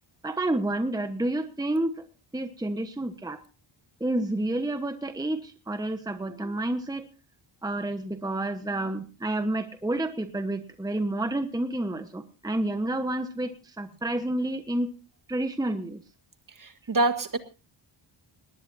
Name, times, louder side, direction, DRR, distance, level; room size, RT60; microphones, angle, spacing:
voice 1, 0.2-2.0 2.3-3.4 4.0-7.1 7.6-14.9 15.3-16.0, right 1 dB, 10° right, 8 dB, 1.2 m, -29 dB
voice 2, 16.6-17.4, right 2 dB, 40° right, 8 dB, 1.8 m, -26 dB
19.5 x 18.5 x 2.7 m, 0.33 s
wide cardioid pair, 120°, 50 cm